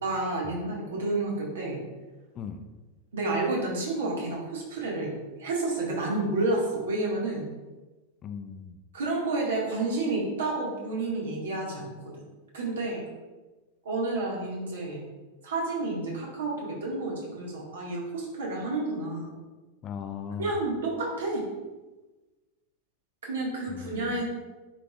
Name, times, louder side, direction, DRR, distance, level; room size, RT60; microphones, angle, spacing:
voice 1, 0.0-1.8 3.1-5.1 5.4-7.4 8.9-11.9 12.5-13.0 13.8-15.0 15.4-19.3 20.4-21.4 23.2-24.2, right 2 dB, 65° right, -3 dB, 1.9 m, -30 dB
voice 2, 8.2-8.8 19.8-20.5 23.7-24.1, left 7 dB, 30° left, 8 dB, 0.5 m, -38 dB
10.0 x 4.8 x 2.4 m, 1.2 s
figure-of-eight pair, 90°, 0 cm